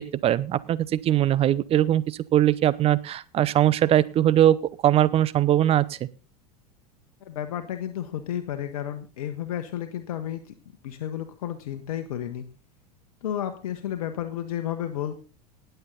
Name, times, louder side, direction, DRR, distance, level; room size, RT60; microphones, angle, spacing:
voice 1, 0.0-4.6 4.8-6.0, right 12 dB, 30° right, 17 dB, 0.7 m, -21 dB
voice 2, 7.2-10.5 10.8-12.5 13.2-15.1, left 10 dB, 60° left, 8 dB, 1.2 m, -32 dB
18.5 x 8.1 x 4.0 m, 0.34 s
figure-of-eight pair, 80°, 20 cm